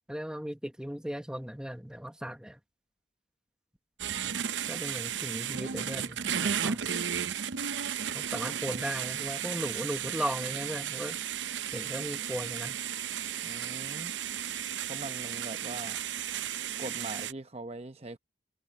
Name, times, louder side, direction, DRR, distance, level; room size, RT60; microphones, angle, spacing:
voice 1, 0.1-2.6 4.7-6.9 8.1-11.2 11.7-12.8, equal, 5° right, 1.0 m, -37 dB
sound 1, 4.0-17.3, right 9 dB, 80° right, 0.7 m, -34 dB
voice 2, 13.4-14.1 14.9-16.0 16.8-18.2, right 2 dB, 35° right, 0.8 m, -41 dB
head